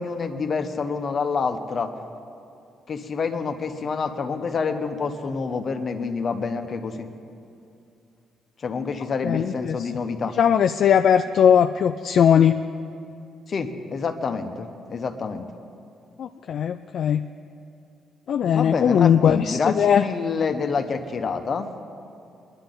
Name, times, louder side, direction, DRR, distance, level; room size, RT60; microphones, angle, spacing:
voice 1, 0.0-1.9 2.9-7.1 8.6-10.4 13.5-15.5 18.4-21.7, left 5 dB, 45° left, 7 dB, 1.0 m, -27 dB
voice 2, 9.2-9.8 10.4-12.6 16.2-17.3 18.3-20.0, left 8 dB, 65° left, 8 dB, 0.3 m, -19 dB
21.5 x 11.0 x 3.9 m, 2.5 s
cardioid pair, 90°, 0 cm